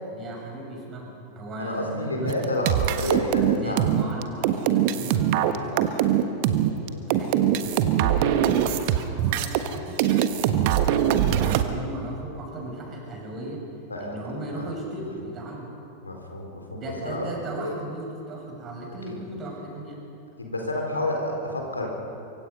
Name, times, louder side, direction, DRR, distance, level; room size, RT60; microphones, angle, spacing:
voice 1, 0.1-2.5 3.5-6.0 7.1-10.1 10.4-13.6 14.0-15.7 16.7-20.0, right 1 dB, 30° right, -1 dB, 7.1 m, -36 dB
voice 2, 1.6-3.9 6.8-7.0 13.9-14.1 14.5-14.6 16.0-17.3 17.6-17.7 19.0-19.2 20.4-21.9, left 1 dB, 80° left, 1 dB, 4.0 m, -30 dB
sound 1, 2.3-9.7 10.0-11.6, right 11 dB, 45° right, 1.3 m, -22 dB
24.5 x 24.0 x 5.5 m, 2.7 s
figure-of-eight pair, 90°, 0 cm